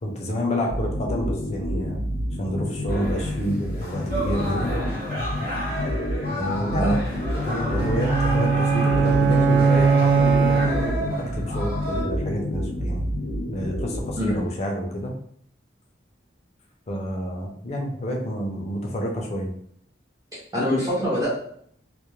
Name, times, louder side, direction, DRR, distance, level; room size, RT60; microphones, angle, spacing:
voice 1, 0.0-2.0 2.4-4.8 6.4-7.0 7.4-13.1 13.5-15.1 16.9-19.5, equal, 35° left, 1 dB, 0.5 m, -29 dB
sound 1, 0.7-14.4, equal, 85° left, 0.6 m, -29 dB
sound 2, 2.9-12.0, equal, 55° right, 0.9 m, -33 dB
sound 3, 7.7-11.2, right 5 dB, 75° right, 0.3 m, -20 dB
voice 2, 20.3-21.3, equal, 20° right, -7 dB, 0.6 m, -24 dB
2.3 x 2.1 x 3.0 m, 0.66 s
head